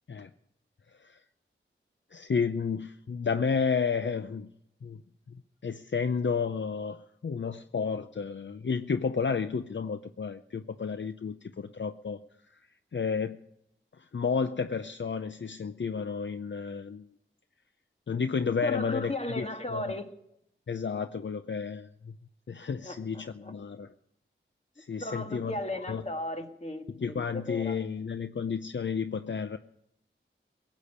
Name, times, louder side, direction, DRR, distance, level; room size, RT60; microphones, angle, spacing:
voice 1, 2.1-4.5 4.8-5.0 5.3-5.4 5.6-12.2 12.9-13.4 14.1-17.1 18.1-19.1 19.4-19.5 19.7-19.8 20.7-22.1 22.5-23.9 24.8-25.5 25.9-26.0 27.0-29.6, left 5 dB, 60° left, 10 dB, 0.6 m, -31 dB
voice 2, 18.6-20.1 22.8-23.5 25.0-27.9, left 2 dB, 30° left, 5 dB, 1.7 m, -36 dB
17.5 x 8.4 x 9.9 m, 0.78 s
wide cardioid pair, 65°, 21 cm